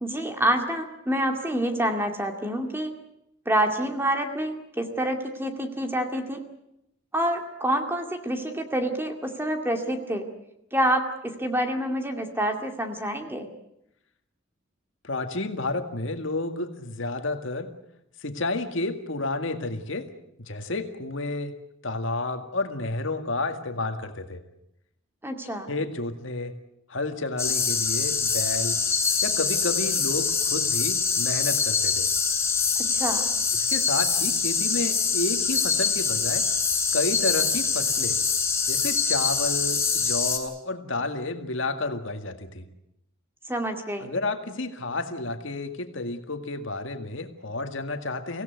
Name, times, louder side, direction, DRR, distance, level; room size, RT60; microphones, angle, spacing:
voice 1, 0.0-3.0 3.5-6.4 7.1-10.3 10.7-13.5 25.2-25.7 32.8-33.2 43.5-44.1, right 1 dB, 10° right, 5 dB, 2.3 m, -27 dB
voice 2, 15.0-17.7 18.2-20.1 20.5-21.5 21.8-24.4 25.7-26.5 26.9-28.8 29.2-32.1 33.5-36.5 36.9-38.2 38.7-42.7 44.0-48.4, left 2 dB, 65° left, 6 dB, 2.0 m, -31 dB
sound 1, 27.4-40.4, left 5 dB, 15° left, 3.5 m, -24 dB
24.5 x 17.0 x 9.4 m, 0.83 s
head